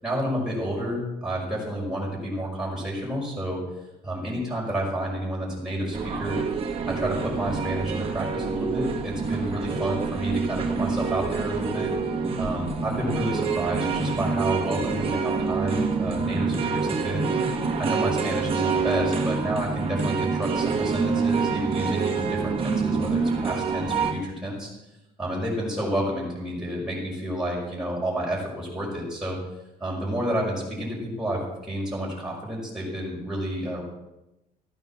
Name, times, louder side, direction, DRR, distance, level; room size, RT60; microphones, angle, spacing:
voice 1, 0.0-3.6 4.0-6.4 6.9-11.9 12.4-17.4 17.8-24.7 25.2-29.4 29.8-33.8, right 1 dB, 5° right, -5 dB, 5.8 m, -30 dB
sound 1, 5.9-24.1, right 5 dB, 35° right, 2.5 m, -27 dB
14.5 x 9.2 x 7.4 m, 0.94 s
cardioid pair, 110°, 17 cm